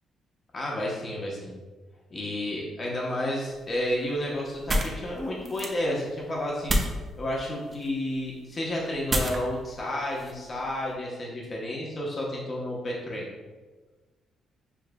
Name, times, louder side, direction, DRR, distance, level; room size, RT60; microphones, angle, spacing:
voice 1, 0.5-1.5 2.1-6.8 7.2-13.3, left 1 dB, 35° left, -3 dB, 0.9 m, -31 dB
sound 1, 3.4-10.9, equal, 35° right, 0.6 m, -33 dB
6.9 x 2.5 x 2.2 m, 1.3 s
cardioid pair, 90°, 0 cm